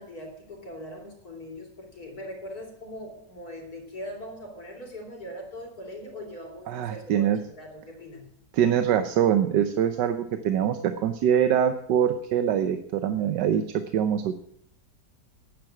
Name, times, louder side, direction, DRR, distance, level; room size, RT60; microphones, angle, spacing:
voice 1, 0.0-8.3, equal, 60° left, 2 dB, 3.5 m, -41 dB
voice 2, 6.7-7.4 8.6-14.3, right 9 dB, 85° right, 9 dB, 1.4 m, -24 dB
9.6 x 9.6 x 8.6 m, 0.70 s
omnidirectional pair, 1.8 m